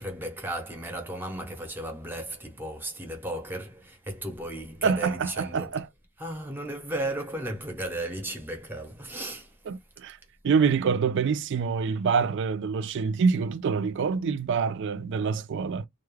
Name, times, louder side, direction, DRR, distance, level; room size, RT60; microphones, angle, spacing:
voice 1, 0.0-5.8 6.2-9.6, right 1 dB, 10° right, 0.7 m, -35 dB
voice 2, 4.8-5.9 9.7-10.2 10.4-15.9, right 5 dB, 55° right, 0.3 m, -26 dB
2.3 x 2.1 x 3.1 m
head